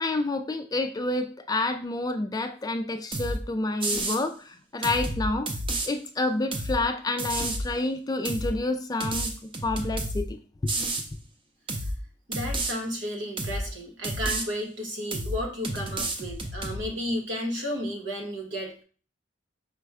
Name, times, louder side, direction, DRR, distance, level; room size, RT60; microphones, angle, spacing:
voice 1, 0.0-5.5 5.8-10.4 10.6-10.7, left 2 dB, 20° left, 7 dB, 0.3 m, -29 dB
sound 1, 3.1-3.4 3.8-4.2 4.8-5.9 6.5-6.8 7.2-7.7 8.2-8.5 9.0-10.2 10.7-11.1 11.7-12.0 12.3-12.7 13.4-13.6 14.0-14.5 15.1-15.4 15.6-16.8, right 1 dB, 30° right, 0.6 m, -30 dB
voice 2, 12.3-18.8, equal, 80° right, 2 dB, 1.2 m, -33 dB
5.0 x 2.2 x 4.7 m, 0.40 s
head